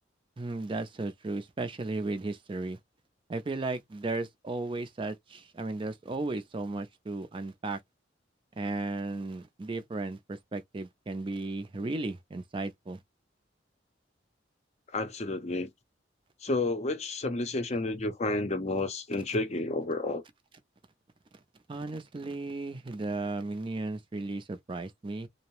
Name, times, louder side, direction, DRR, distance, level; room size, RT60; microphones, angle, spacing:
voice 1, 0.4-2.8 3.3-7.8 8.6-13.0 21.7-25.3, right 2 dB, 25° right, 0.4 m, -35 dB
voice 2, 14.9-15.7 16.4-20.2, left 2 dB, 35° left, 0.5 m, -31 dB
2.6 x 2.0 x 3.0 m
head